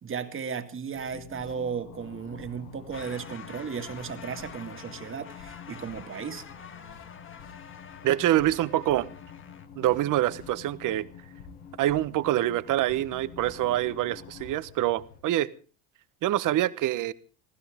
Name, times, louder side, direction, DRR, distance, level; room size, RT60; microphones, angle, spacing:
voice 1, 0.0-6.4, right 6 dB, 30° right, 7 dB, 2.2 m, -35 dB
sound 1, 0.9-14.6, left 7 dB, 70° left, 4.9 m, -48 dB
sound 2, 1.9-15.2, left 6 dB, 90° left, 7.5 m, -53 dB
sound 3, 2.9-9.7, left 7 dB, 30° left, 1.6 m, -47 dB
voice 2, 8.0-9.1 9.8-11.1 11.8-15.5 16.2-17.1, right 14 dB, 50° right, 16 dB, 1.1 m, -25 dB
25.5 x 15.5 x 3.6 m, 0.38 s
supercardioid pair, 95°, 38 cm